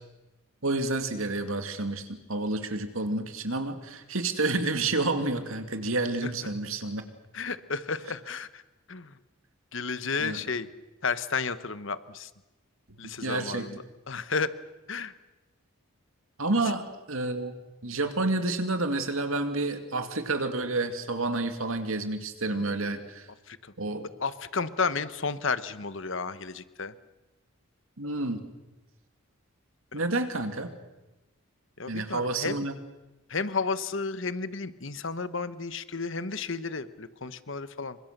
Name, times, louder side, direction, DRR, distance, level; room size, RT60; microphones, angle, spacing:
voice 1, 0.6-7.1 10.2-10.4 13.0-13.7 16.4-17.5 17.8-23.3 23.8-24.0 28.0-28.4 29.9-30.7 31.9-32.8, right 2 dB, 70° right, 7 dB, 2.4 m, -29 dB
voice 2, 7.3-8.6 8.9-9.1 9.7-10.7 11.0-12.3 13.0-14.5 14.9-15.1 23.5-23.7 24.2-26.9 29.9-30.0 31.8-32.7 33.3-38.0, left 4 dB, 60° left, 13 dB, 1.2 m, -32 dB
27.5 x 24.5 x 6.8 m, 1.1 s
head